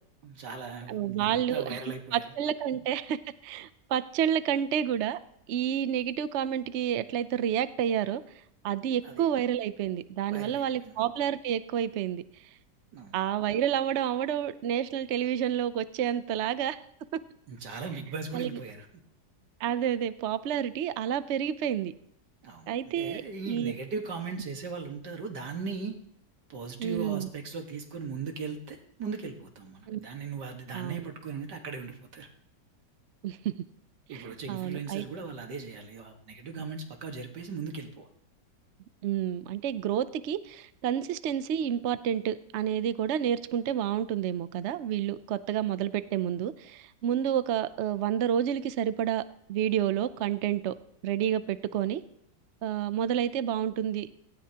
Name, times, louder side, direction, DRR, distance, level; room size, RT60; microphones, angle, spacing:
voice 1, 0.2-2.3 9.0-9.3 10.3-10.9 12.9-13.3 17.5-18.9 22.4-25.9 26.5-32.3 34.1-38.1, right 4 dB, 80° right, 3 dB, 2.2 m, -38 dB
voice 2, 0.9-1.8 2.1-5.2 5.5-8.2 8.6-12.2 13.1-16.8 18.3-18.6 19.6-21.9 22.7-23.7 26.8-27.3 29.9-30.0 30.7-31.0 33.2-33.6 34.1-35.1 39.0-49.2 49.5-50.7 51.0-52.0 52.6-54.1, right 9 dB, 65° right, 13 dB, 0.7 m, -29 dB
18.0 x 16.5 x 2.9 m, 0.73 s
omnidirectional pair, 1.8 m